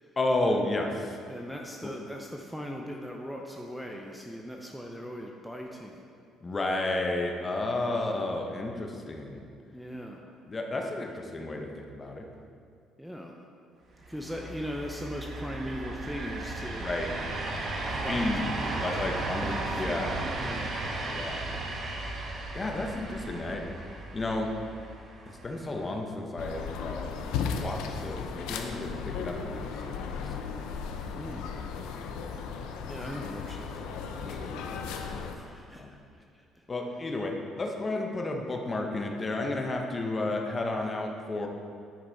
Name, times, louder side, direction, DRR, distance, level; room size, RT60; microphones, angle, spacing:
voice 1, 0.2-0.9 6.4-9.4 10.5-12.2 16.8-17.1 18.1-18.5 18.8-20.1 21.1-21.4 22.5-23.6 24.1-24.5 25.3-27.1 27.6-30.2 35.8-35.9 36.7-41.5, left 2 dB, 25° left, 2 dB, 1.0 m, -32 dB
voice 2, 1.3-6.0 7.8-8.2 9.7-10.2 13.0-13.4 14.1-16.9 17.8-20.1 20.4-20.8 31.1-31.5 32.6-35.8 36.1-36.2, equal, ahead, 0 dB, 0.7 m, -40 dB
sound 1, 14.0-26.0, right 2 dB, 50° right, 1.2 m, -35 dB
sound 2, 26.4-35.3, left 6 dB, 85° left, 0.6 m, -36 dB
10.0 x 5.4 x 4.0 m, 2.3 s
cardioid pair, 95°, 0 cm